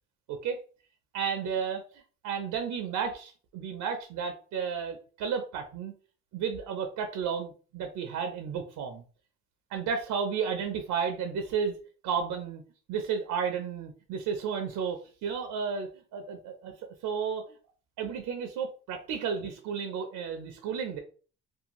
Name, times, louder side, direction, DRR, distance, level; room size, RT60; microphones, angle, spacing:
voice 1, 0.3-0.6 1.1-5.9 6.3-9.0 9.7-11.7 12.0-12.6 12.9-16.7 17.0-17.5 18.0-21.0, right 6 dB, 85° right, 5 dB, 0.5 m, -32 dB
2.6 x 2.2 x 2.9 m, 0.38 s
cardioid pair, 90°, 30 cm